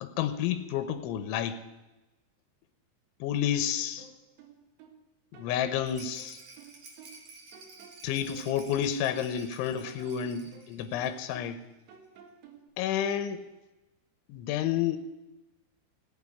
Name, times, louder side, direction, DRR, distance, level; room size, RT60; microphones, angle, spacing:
voice 1, 0.0-1.6 3.2-4.1 5.3-6.4 8.0-11.6 12.8-13.5 14.3-15.0, left 9 dB, 85° left, 11 dB, 3.3 m, -30 dB
sound 1, 4.0-5.0 5.3-7.3 7.5-9.4 9.7-11.6 11.9-12.7, right 7 dB, 70° right, 3.9 m, -53 dB
Rattle, 5.8-11.5 11.8-11.9 12.2-12.3, right 3 dB, 45° right, 2.7 m, -52 dB
15.5 x 8.5 x 9.8 m, 1.0 s
omnidirectional pair, 5.3 m